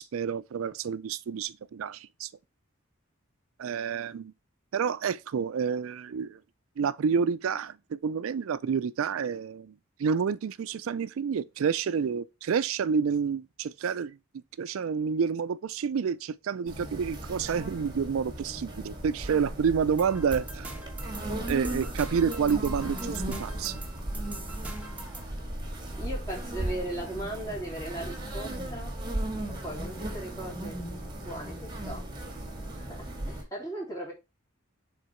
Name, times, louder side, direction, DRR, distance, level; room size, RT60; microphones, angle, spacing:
voice 1, 0.0-2.3 3.6-4.3 4.7-6.4 6.8-14.2 14.6-20.7 21.5-23.8, right 6 dB, 75° right, 0.4 m, -29 dB
sound 1, 16.7-33.4, right 1 dB, 20° right, 1.6 m, -36 dB
sound 2, 20.0-25.3, right 3 dB, 5° right, 1.2 m, -44 dB
voice 2, 25.2-28.9 29.5-30.8 31.2-32.1 32.7-34.1, right 1 dB, 15° left, 3.3 m, -38 dB
6.4 x 3.9 x 4.4 m
head